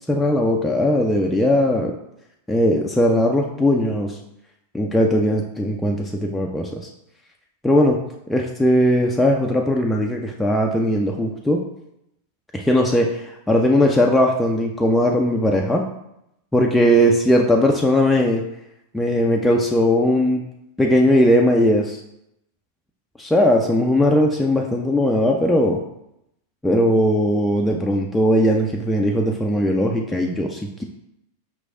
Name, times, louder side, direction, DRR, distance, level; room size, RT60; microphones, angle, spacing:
voice 1, 0.1-1.9 2.5-4.2 4.7-6.9 7.6-8.0 8.3-11.6 12.5-15.8 16.5-18.4 18.9-20.4 20.8-22.0 23.2-25.8 26.6-30.8, left 1 dB, 5° left, 0 dB, 0.3 m, -19 dB
5.2 x 3.1 x 2.5 m, 0.82 s
figure-of-eight pair, 90°, 0 cm